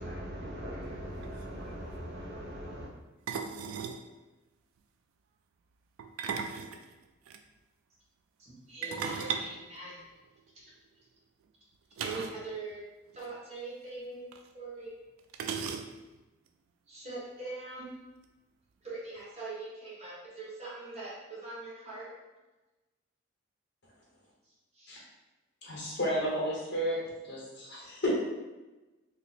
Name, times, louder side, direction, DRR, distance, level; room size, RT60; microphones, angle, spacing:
voice 1, 0.0-2.9, equal, 55° right, -4 dB, 0.9 m, -40 dB
sound 1, 0.9-1.0 1.2-1.5 3.3-4.1 6.0-7.4 8.8-10.5 12.0-12.5 12.7-12.8 13.1-13.3 14.3-14.4 15.3-16.2, right 6 dB, 80° right, 0.3 m, -37 dB
voice 2, 8.4-10.0 10.5-10.6 12.0-12.8 13.1-14.3 14.5-14.9 16.9-17.9 18.8-22.1 24.4-25.0, right 3 dB, 30° right, -6 dB, 1.1 m, -42 dB
voice 3, 25.6-27.0 27.2-28.1, equal, 55° left, -5 dB, 1.1 m, -32 dB
2.8 x 2.4 x 4.1 m, 1.1 s
head